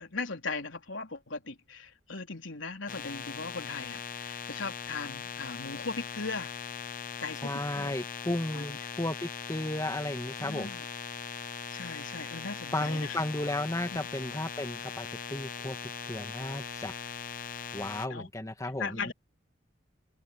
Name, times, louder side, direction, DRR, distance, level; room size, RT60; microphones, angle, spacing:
voice 1, 0.0-6.5 7.2-7.9 8.3-8.8 10.4-10.8 11.7-13.2 13.9-14.0 18.1-18.3 18.6-19.1, left 4 dB, 80° left, 3.9 m, -38 dB
sound 1, 2.9-18.1, left 7 dB, 45° left, 0.8 m, -40 dB
voice 2, 7.4-10.7 12.7-16.9 17.7-19.1, left 1 dB, 15° left, 1.8 m, -34 dB
open air
head